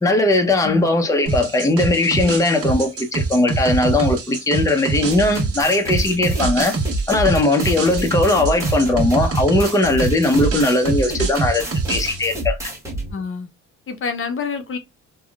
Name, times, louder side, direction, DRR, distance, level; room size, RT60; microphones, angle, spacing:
voice 1, 0.0-6.8 7.1-11.6 11.9-12.6, left 2 dB, 10° left, 0.7 m, -18 dB
sound 1, 1.3-12.2, right 3 dB, 50° right, 1.4 m, -25 dB
sound 2, 5.1-13.1, right 2 dB, 10° right, 1.3 m, -28 dB
voice 2, 13.1-13.5 13.9-14.8, left 5 dB, 45° left, 0.8 m, -27 dB
3.6 x 2.3 x 2.3 m
cardioid pair, 90°, 30 cm